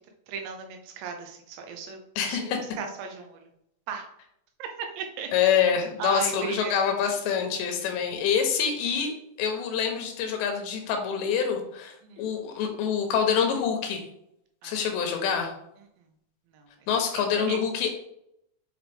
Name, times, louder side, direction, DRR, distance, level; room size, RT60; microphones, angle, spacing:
voice 1, 0.3-2.5 2.8-3.5 3.9-4.1 4.6-5.5 6.0-6.8 7.4-7.5 12.0-12.3 14.6-14.9 16.5-16.7 17.1-17.6, right 6 dB, 85° right, 4 dB, 3.1 m, -37 dB
voice 2, 2.2-2.6 5.3-14.0 14.6-15.5 16.9-17.9, left 7 dB, 85° left, 3 dB, 3.3 m, -26 dB
8.0 x 4.8 x 3.5 m, 0.78 s
omnidirectional pair, 4.9 m